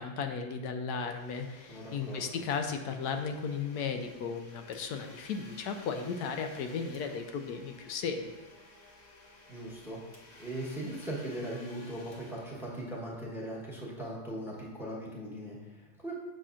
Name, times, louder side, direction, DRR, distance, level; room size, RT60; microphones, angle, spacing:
voice 1, 0.0-8.3, left 5 dB, 90° left, 6 dB, 1.2 m, -35 dB
Domestic sounds home sounds, 0.9-13.5, left 2 dB, 40° left, 0.6 m, -55 dB
voice 2, 1.7-2.3 9.5-16.1, right 1 dB, ahead, -3 dB, 0.9 m, -39 dB
7.4 x 5.6 x 2.5 m, 1.1 s
omnidirectional pair, 1.6 m